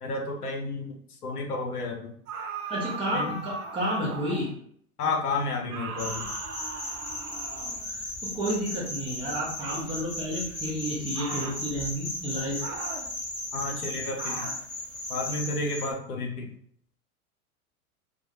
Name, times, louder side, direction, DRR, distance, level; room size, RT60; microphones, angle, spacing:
voice 1, 0.0-0.9 1.2-2.1 3.1-3.3 5.0-6.3 13.5-14.5 15.1-16.5, left 3 dB, 80° left, 1 dB, 0.7 m, -31 dB
sound 1, 2.3-4.6 5.7-7.9 9.6-10.0 11.1-11.6 12.6-13.1 14.2-14.6, right 4 dB, 80° right, 0.6 m, -38 dB
voice 2, 2.7-4.5 7.8-12.8, equal, 15° right, -6 dB, 0.5 m, -31 dB
sound 2, 6.0-15.9, left 1 dB, 15° left, 0.9 m, -36 dB
2.2 x 2.1 x 2.7 m, 0.62 s
figure-of-eight pair, 95°, 44 cm